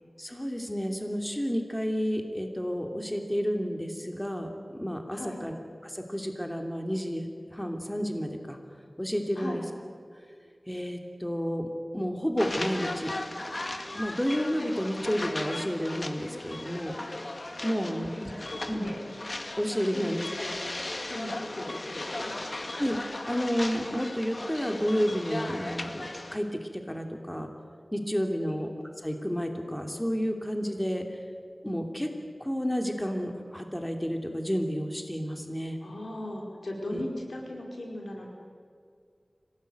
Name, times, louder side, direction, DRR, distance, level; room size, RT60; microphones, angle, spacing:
voice 1, 0.2-5.6 5.8-8.6 9.0-9.6 10.7-11.7 11.9-13.1 13.9-16.9 17.6-18.3 18.7-18.9 19.6-20.3 22.7-23.0 23.3-27.5 27.9-28.7 29.0-31.2 31.6-32.1 32.4-35.8 36.9-37.0, equal, 10° left, 4 dB, 3.0 m, -31 dB
voice 2, 5.1-5.4 9.4-9.6 17.9-18.0 18.3-19.0 19.9-20.0 20.4-20.6 21.0-22.7 28.4-28.6 35.8-38.3, left 1 dB, 85° left, 0 dB, 5.1 m, -38 dB
sound 1, 12.4-26.3, left 2 dB, 50° left, 2.0 m, -37 dB
26.0 x 18.0 x 9.3 m, 2.2 s
wide cardioid pair, 60°, 0 cm